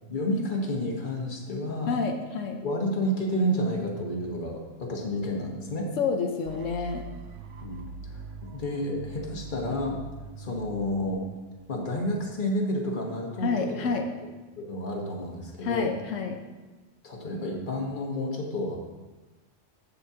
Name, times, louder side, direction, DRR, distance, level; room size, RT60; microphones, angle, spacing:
voice 1, 0.1-2.0 2.6-5.9 7.6-7.8 8.1-10.0 10.4-11.2 11.7-13.5 13.8-13.9 14.6-15.9 17.0-18.8, left 1 dB, 40° left, 0 dB, 1.4 m, -30 dB
voice 2, 1.9-2.6 6.0-7.1 13.4-14.0 15.6-16.4, left 5 dB, 85° left, 4 dB, 1.1 m, -28 dB
sound 1, 6.4-12.4, right 3 dB, 80° right, 1.0 m, -43 dB
15.0 x 5.5 x 2.8 m, 1.2 s
omnidirectional pair, 1.3 m